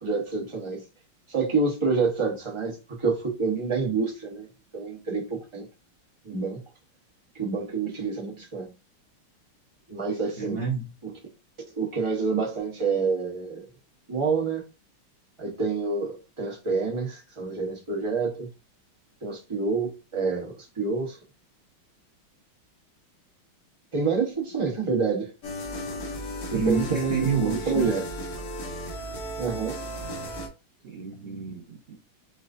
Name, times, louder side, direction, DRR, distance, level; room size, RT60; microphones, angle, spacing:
voice 1, 0.0-0.8 1.3-4.5 4.7-5.7 6.2-6.6 7.3-8.7 9.9-10.6 11.7-13.7 14.1-14.6 15.4-18.5 19.2-21.2 23.9-25.3 26.5-28.0 29.4-29.8, right 4 dB, 25° right, 0.6 m, -27 dB
voice 2, 10.4-10.8 26.5-27.9 30.8-31.9, right 5 dB, 85° right, 0.5 m, -28 dB
sound 1, 25.4-30.5, equal, 50° left, 1.4 m, -35 dB
5.8 x 2.6 x 2.6 m
omnidirectional pair, 2.4 m